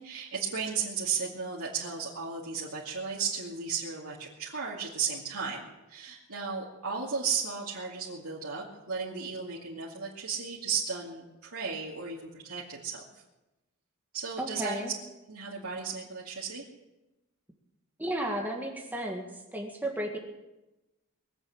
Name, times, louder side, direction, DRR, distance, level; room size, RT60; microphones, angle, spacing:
voice 1, 0.0-13.0 14.1-14.8 15.3-16.6, right 6 dB, 90° right, -6 dB, 2.4 m, -35 dB
voice 2, 14.4-14.9 18.0-19.3 19.5-20.2, right 1 dB, 10° right, 1 dB, 1.7 m, -33 dB
22.0 x 7.9 x 7.7 m, 1.0 s
head